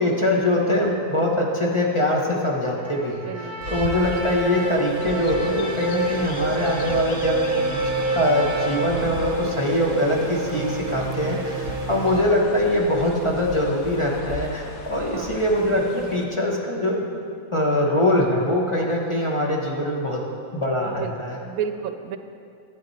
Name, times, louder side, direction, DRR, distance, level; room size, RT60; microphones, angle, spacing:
voice 1, 0.0-3.3 3.7-17.1 17.5-20.2 20.5-21.4, left 1 dB, 25° left, -2 dB, 1.0 m, -23 dB
Trumpet, 2.7-9.5, right 1 dB, 10° right, 0.9 m, -35 dB
voice 2, 3.2-3.8 11.2-11.5 11.9-12.3 15.1-15.4 20.8-21.1 21.4-22.2, right 8 dB, 80° right, 8 dB, 1.0 m, -33 dB
sound 1, 3.5-12.2, right 3 dB, 45° right, 0.9 m, -29 dB
Chirp tweet, 3.6-16.2, left 4 dB, 60° left, 1.0 m, -37 dB
11.5 x 9.0 x 4.1 m, 2.5 s
omnidirectional pair, 1.5 m